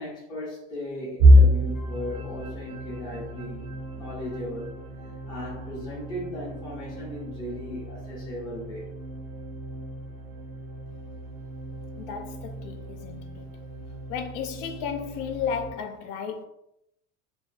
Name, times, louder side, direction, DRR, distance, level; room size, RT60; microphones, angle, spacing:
voice 1, 0.0-3.7 4.0-4.7 5.3-8.9, left 1 dB, 10° left, 0.5 m, -37 dB
sound 1, 1.2-13.0 13.5-13.7 14.1-14.3 15.1-15.6, equal, 40° right, 0.5 m, -26 dB
sound 2, 1.4-15.7, right 1 dB, 85° right, 0.6 m, -40 dB
voice 2, 12.0-13.5 14.1-16.5, left 7 dB, 75° left, 0.5 m, -33 dB
2.3 x 2.2 x 2.4 m
cardioid pair, 170°, 37 cm